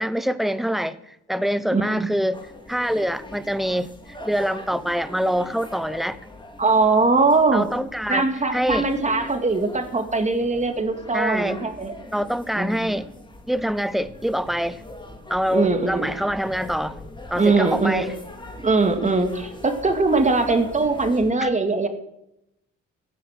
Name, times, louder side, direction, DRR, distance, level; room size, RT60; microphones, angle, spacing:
voice 1, 0.0-2.4 2.7-3.9 4.2-6.2 7.5-8.3 8.5-8.9 11.1-11.6 12.1-13.1 13.5-14.8 15.3-17.0 17.3-18.1, equal, ahead, 15 dB, 0.8 m, -25 dB
voice 2, 1.7-2.1 6.6-7.7 8.1-11.9 12.6-12.9 15.5-16.1 17.4-18.1 18.6-21.9, right 3 dB, 25° right, 7 dB, 2.2 m, -21 dB
sound 1, 2.3-21.3, left 1 dB, 15° left, 2.5 m, -41 dB
15.0 x 9.3 x 6.6 m, 0.81 s
cardioid pair, 90°, 30 cm